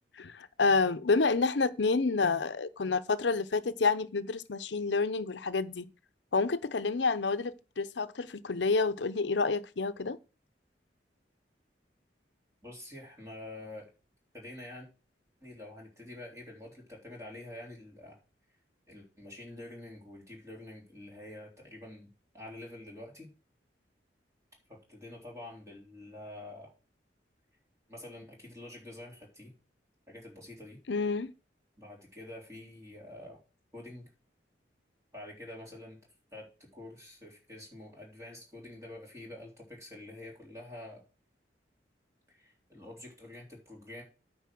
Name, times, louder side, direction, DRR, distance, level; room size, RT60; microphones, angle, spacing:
voice 1, 0.2-5.9 6.3-10.2 30.9-31.3, left 4 dB, 80° left, 0.7 m, -29 dB
voice 2, 12.6-13.9 14.3-14.9 15.4-18.2 18.9-23.3 24.7-26.7 27.9-29.5 30.1-30.8 31.8-33.4 33.7-34.1 35.1-36.0 36.3-36.5 36.7-41.0 42.3-44.0, left 1 dB, 15° right, 3.5 m, -47 dB
9.3 x 5.4 x 6.2 m
head